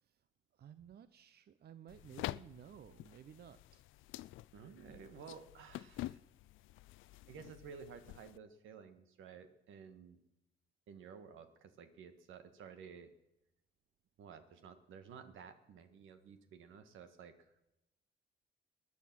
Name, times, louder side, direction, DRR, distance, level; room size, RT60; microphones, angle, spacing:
voice 1, 0.6-3.8 4.9-5.0, right 9 dB, 55° right, 13 dB, 0.7 m, -55 dB
sound 1, 1.9-8.4, left 16 dB, 85° left, 0.4 m, -48 dB
voice 2, 4.5-6.2 7.3-10.2 10.9-13.1 14.2-17.5, right 6 dB, 85° right, 9 dB, 1.6 m, -53 dB
19.5 x 10.5 x 6.1 m, 0.92 s
cardioid pair, 90°, 20 cm